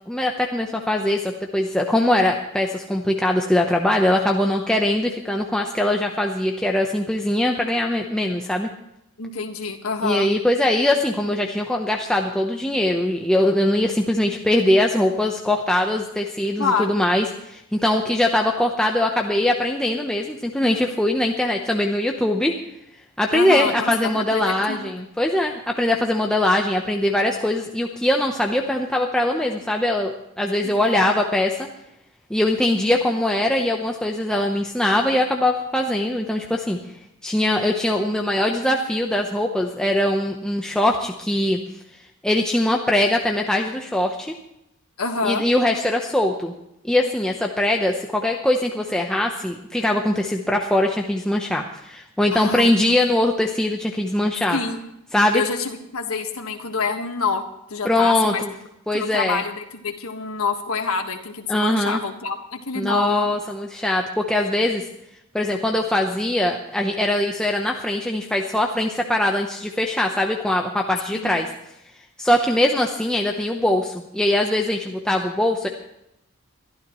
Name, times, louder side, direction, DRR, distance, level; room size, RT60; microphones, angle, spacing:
voice 1, 0.1-8.7 10.0-22.5 23.2-31.7 32.3-36.8 37.2-41.6 42.2-44.3 45.2-46.5 46.8-54.6 55.1-55.4 57.8-58.5 58.9-59.4 61.5-62.0 62.8-64.8 65.3-71.5 72.2-75.7, left 1 dB, 5° left, 1 dB, 0.8 m, -21 dB
voice 2, 9.2-10.3 16.6-16.9 23.3-25.0 30.6-31.2 45.0-45.4 52.3-52.8 54.5-54.8 55.3-57.4 57.7-58.4 58.9-63.3 71.1-71.4, left 4 dB, 85° left, 3 dB, 1.6 m, -27 dB
23.0 x 12.5 x 3.1 m, 0.81 s
head